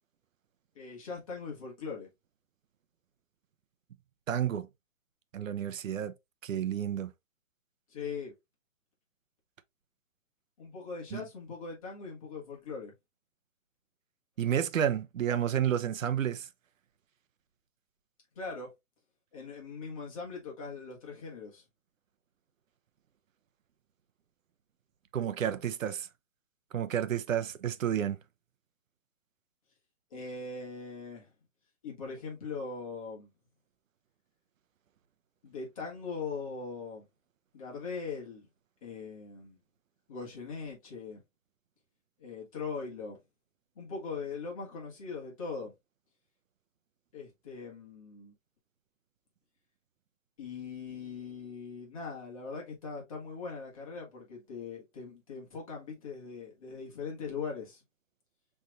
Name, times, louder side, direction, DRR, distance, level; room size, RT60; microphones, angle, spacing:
voice 1, 0.7-2.1 7.9-8.3 10.6-12.9 18.3-18.7 19.3-21.6 30.1-31.3 31.8-33.3 35.4-37.0 37.5-38.5 38.8-39.6 40.1-41.2 42.2-43.2 43.7-45.7 47.1-48.3 50.4-57.8, left 4 dB, 25° left, 1.6 m, -40 dB
voice 2, 4.3-4.7 5.3-6.1 6.4-7.1 11.1-11.2 14.4-16.5 25.1-26.1 26.7-28.2, right 9 dB, 90° right, 0.7 m, -30 dB
5.4 x 3.4 x 2.5 m
hypercardioid pair, 175°, 38 cm